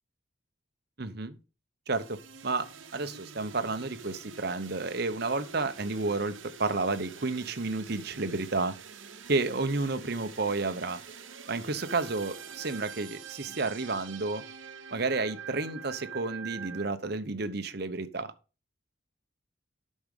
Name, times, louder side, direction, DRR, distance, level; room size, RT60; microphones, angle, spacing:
voice 1, 1.0-1.4 1.9-2.2 2.4-2.7 2.9-6.3 6.6-8.7 9.3-11.0 11.5-14.4 14.9-18.3, right 3 dB, 50° right, 0.9 m, -31 dB
sound 1, 1.9-16.9, right 7 dB, 70° right, 1.1 m, -46 dB
8.6 x 6.4 x 5.4 m
head